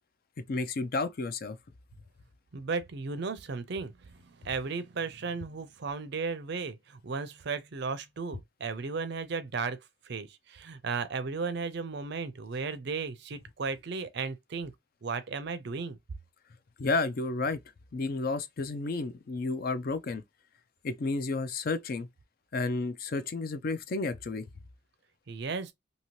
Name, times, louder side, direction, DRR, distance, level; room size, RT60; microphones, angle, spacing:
voice 1, 0.5-1.6 16.8-17.6 17.9-20.2 20.8-22.1 22.5-24.4, left 3 dB, 45° left, 0.4 m, -31 dB
voice 2, 2.5-9.8 10.1-14.7 15.0-16.0 25.3-25.7, right 4 dB, 50° right, 0.5 m, -35 dB
2.8 x 2.7 x 3.0 m
head